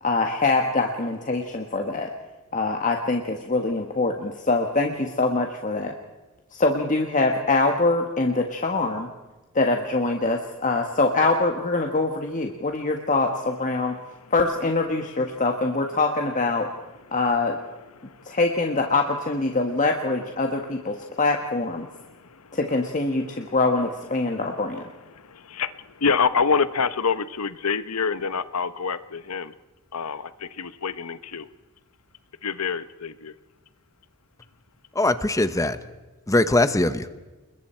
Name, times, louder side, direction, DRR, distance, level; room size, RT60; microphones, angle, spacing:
voice 1, 0.0-2.1 2.5-5.9 6.5-9.1 9.5-13.9 14.3-16.7 17.1-17.5 18.2-21.9 22.5-24.8, left 3 dB, 35° left, 3 dB, 1.5 m, -24 dB
voice 2, 22.1-22.6 25.1-29.5 29.9-31.5 32.4-33.3, left 5 dB, 85° left, 13 dB, 0.9 m, -27 dB
voice 3, 35.0-35.8 36.3-37.1, left 2 dB, 15° left, 12 dB, 0.9 m, -21 dB
29.0 x 21.5 x 4.5 m, 1.2 s
head